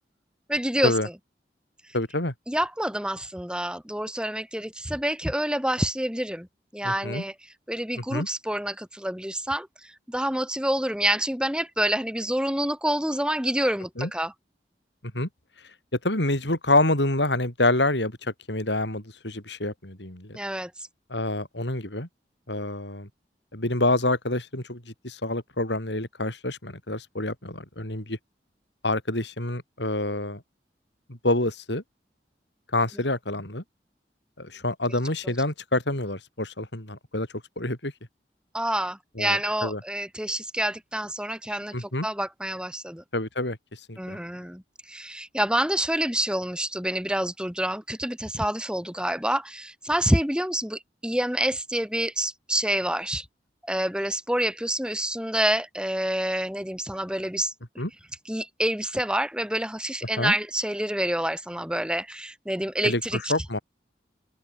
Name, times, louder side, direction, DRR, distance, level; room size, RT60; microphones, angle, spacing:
voice 1, 0.5-0.9 2.5-6.5 6.7-7.3 7.7-14.3 20.3-20.7 38.5-43.0 44.0-44.6 44.9-53.2 53.7-57.5 58.3-63.3, right 1 dB, 5° right, 4.7 m, -27 dB
voice 2, 1.9-2.3 6.8-7.2 8.0-8.3 14.0-14.1 15.1-15.3 16.0-20.4 21.1-22.1 22.5-23.1 23.5-28.2 28.8-30.4 31.1-31.8 32.7-33.6 34.4-37.3 37.6-37.9 39.2-39.8 41.7-42.1 43.1-43.6 43.9-44.2 57.8-57.9 60.2-60.3 62.8-63.6, left 2 dB, 85° left, 6.4 m, -27 dB
open air
head